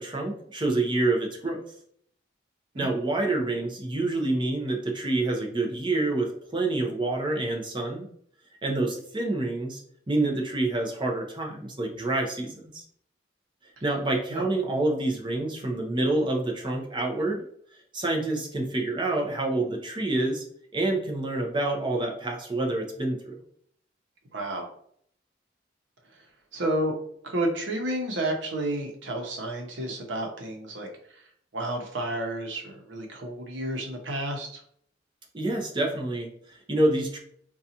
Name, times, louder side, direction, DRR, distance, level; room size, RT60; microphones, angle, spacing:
voice 1, 0.0-1.6 2.8-8.1 8.6-9.8 10.1-12.8 13.8-17.4 17.9-20.4 20.7-23.3 35.3-37.2, right 2 dB, 25° right, 0 dB, 0.7 m, -27 dB
voice 2, 24.3-24.7 26.5-26.9 27.2-30.9 31.5-34.6, right 1 dB, 90° right, 2 dB, 0.8 m, -31 dB
3.9 x 2.3 x 2.8 m, 0.64 s
head